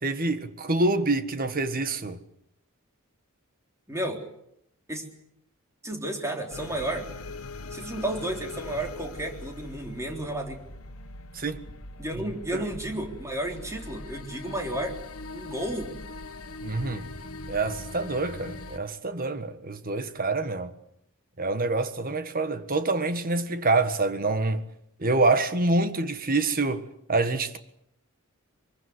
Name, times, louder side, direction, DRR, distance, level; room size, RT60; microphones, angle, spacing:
voice 1, 0.0-2.2 11.3-11.6 12.5-12.6 16.6-17.1 17.5-20.7 21.4-24.6 25.0-27.6, right 2 dB, 40° right, 1.6 m, -26 dB
voice 2, 3.9-4.2 4.9-5.0 5.8-7.1 7.7-10.6 12.0-15.0 15.3-16.0, right 1 dB, 15° right, 3.7 m, -32 dB
sound 1, 6.5-18.8, left 2 dB, 80° left, 1.7 m, -41 dB
23.5 x 22.0 x 8.1 m
head